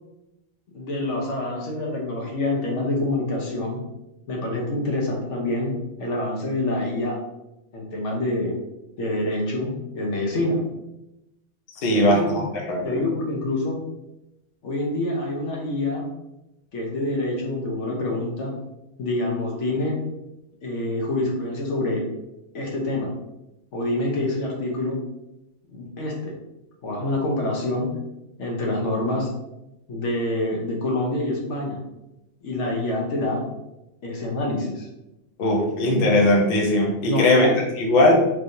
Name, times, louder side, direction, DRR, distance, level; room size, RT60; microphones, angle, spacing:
voice 1, 0.7-3.8 4.3-7.2 7.7-8.5 9.0-10.6 11.9-12.4 12.8-13.8 14.6-16.0 16.7-18.5 19.0-20.0 20.6-22.0 22.5-23.1 23.7-25.0 25.7-26.3 26.8-27.9 28.4-29.3 29.9-31.8 32.4-33.4 34.0-34.9 37.0-37.6, left 1 dB, 70° left, -1 dB, 1.1 m, -26 dB
voice 2, 11.8-13.0 35.4-38.1, left 1 dB, 55° left, -2 dB, 0.8 m, -19 dB
3.3 x 3.1 x 2.6 m, 0.92 s
omnidirectional pair, 1.3 m